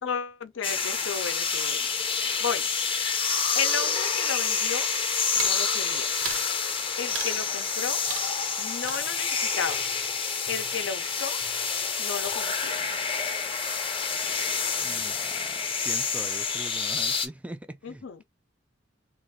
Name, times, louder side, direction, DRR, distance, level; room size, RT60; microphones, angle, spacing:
voice 1, 0.0-1.9 2.4-2.6 3.5-4.9 5.4-6.1 7.0-8.0 8.6-9.8 10.5-11.4 12.0-12.8 17.8-18.2, left 6 dB, 70° left, 0.5 m, -33 dB
sound 1, 0.6-17.3, left 5 dB, 25° left, 0.6 m, -28 dB
sound 2, 5.3-5.7 6.2-6.5 7.1-7.5 8.0-8.6 8.8-11.1 11.4-12.0 12.2-12.8, right 7 dB, 75° right, 0.8 m, -40 dB
voice 2, 14.8-15.6 15.8-18.2, right 1 dB, 5° right, 0.3 m, -42 dB
3.0 x 2.4 x 3.5 m
head